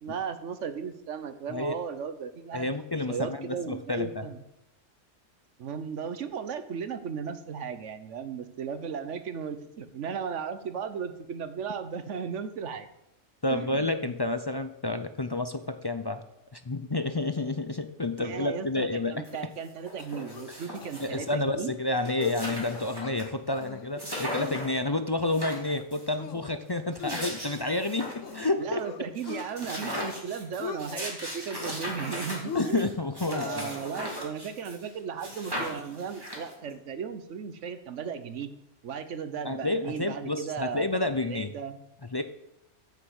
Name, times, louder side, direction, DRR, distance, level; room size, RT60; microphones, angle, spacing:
voice 1, 0.0-2.7 3.1-4.4 5.6-12.9 13.5-14.0 18.2-21.7 28.6-32.9 33.3-38.5 38.8-41.8, right 6 dB, 70° right, 11 dB, 1.2 m, -36 dB
voice 2, 2.5-4.3 13.4-16.2 16.5-19.2 20.5-20.7 21.0-28.8 32.5-33.7 39.4-41.5 42.1-42.2, left 2 dB, 35° left, 9 dB, 0.4 m, -30 dB
sound 1, 19.2-19.3 19.6-21.3 21.7-21.8 22.0-23.2 23.6-23.7 24.0-24.8 25.2-26.1 26.8-28.4 28.8-28.9 29.2-34.9 35.2-36.7, equal, 20° right, 3.0 m, -38 dB
sound 2, 20.0-20.5 20.8-20.9 21.3-21.5 21.9-22.4 22.7-23.2 23.6-24.0 24.3-25.0 25.4-25.9 26.2-26.6 27.0-28.5 28.8-29.5 29.8-30.2 30.5-31.1 31.5-32.1 32.4-33.8, left 6 dB, 75° left, 1.2 m, -39 dB
9.3 x 7.3 x 8.1 m, 0.84 s
omnidirectional pair, 1.3 m